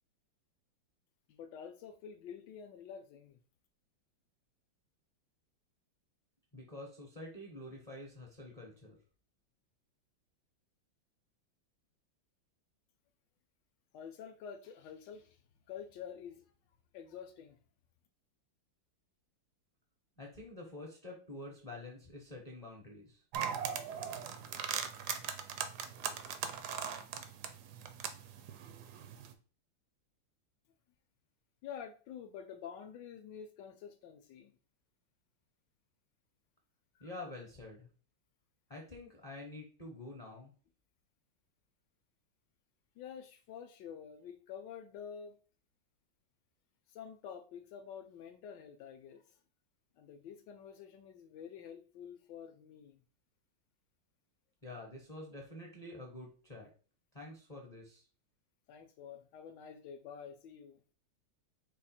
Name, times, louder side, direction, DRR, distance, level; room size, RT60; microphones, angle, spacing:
voice 1, 1.3-3.4 13.9-15.4 15.7-16.4 16.9-17.6 31.6-34.5 37.0-37.1 43.0-45.4 46.9-49.3 50.0-53.0 58.7-60.8, left 7 dB, 75° left, 6 dB, 1.2 m, -48 dB
voice 2, 6.5-9.0 20.2-23.2 37.0-37.9 38.7-40.5 54.6-56.7 57.1-58.0, left 2 dB, 35° left, -1 dB, 0.6 m, -48 dB
sound 1, 23.3-29.3, right 8 dB, 70° right, 1.0 m, -40 dB
4.8 x 2.4 x 4.2 m, 0.38 s
omnidirectional pair, 2.1 m